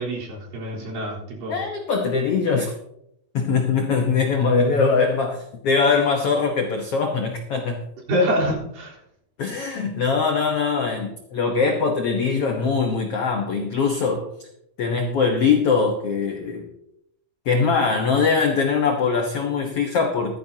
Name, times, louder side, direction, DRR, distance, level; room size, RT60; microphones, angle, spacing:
voice 1, 0.0-1.6 8.1-9.0, equal, 70° right, -5 dB, 5.4 m, -25 dB
voice 2, 1.5-2.7 3.3-7.8 9.4-14.3 14.8-16.7 17.4-20.4, left 5 dB, 70° left, 3 dB, 1.4 m, -22 dB
16.0 x 13.5 x 2.8 m, 0.77 s
omnidirectional pair, 4.2 m